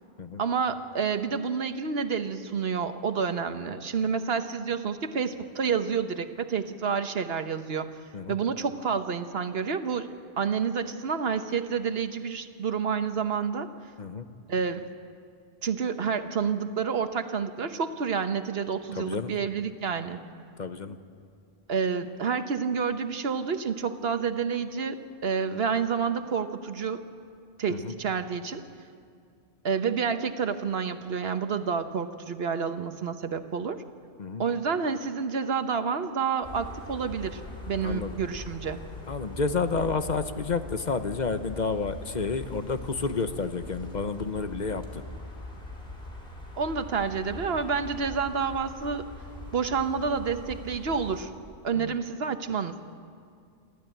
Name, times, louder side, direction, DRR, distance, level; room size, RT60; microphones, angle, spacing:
voice 1, 0.4-7.9 8.3-10.1 10.4-13.7 14.5-14.8 15.6-20.2 21.7-27.0 27.6-28.6 29.6-33.8 34.4-37.4 37.7-38.8 46.6-49.1 49.5-51.3 51.6-52.7, right 6 dB, 70° right, 9 dB, 1.2 m, -29 dB
voice 2, 18.9-19.3 20.6-21.0 27.7-27.9 34.2-34.4 37.8-38.2 39.1-45.0 51.7-52.0, left 4 dB, 45° left, 9 dB, 1.0 m, -30 dB
sound 1, 36.4-51.2, left 2 dB, 65° left, 3.2 m, -42 dB
28.5 x 12.5 x 9.0 m, 2.3 s
omnidirectional pair, 1.0 m